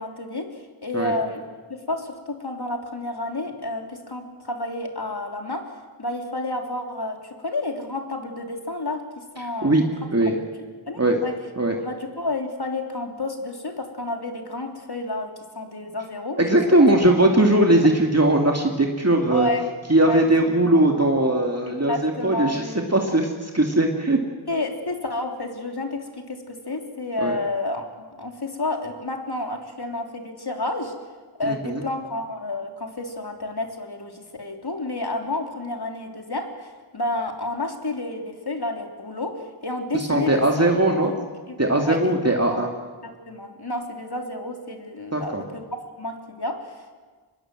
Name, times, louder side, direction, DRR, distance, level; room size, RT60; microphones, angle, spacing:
voice 1, 0.0-1.4 1.7-9.8 10.3-10.4 10.9-11.3 11.8-16.6 19.3-19.7 20.1-20.3 21.7-22.8 24.5-27.8 28.2-30.9 31.4-40.4 41.0-41.1 41.5-41.6 41.8-42.1 43.0-45.6 46.0-46.8, left 2 dB, 50° left, 3 dB, 3.5 m, -30 dB
voice 2, 16.4-19.5 19.9-22.6 22.9-24.2 27.2-27.4 31.4-31.8 39.9-41.1 41.6-42.7 45.1-45.4, right 1 dB, 30° right, 1 dB, 2.5 m, -19 dB
25.5 x 20.5 x 7.8 m, 1.4 s
wide cardioid pair, 50°, 49 cm